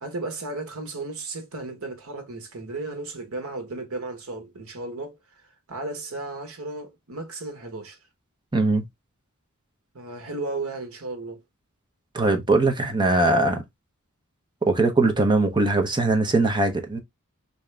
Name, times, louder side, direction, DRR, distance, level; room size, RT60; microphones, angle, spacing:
voice 1, 0.0-5.2 5.7-8.0 9.9-11.4, right 2 dB, 70° right, 1.2 m, -34 dB
voice 2, 8.5-8.8 12.1-13.6 14.6-17.0, right 2 dB, 20° right, 0.8 m, -21 dB
3.6 x 2.7 x 3.2 m
head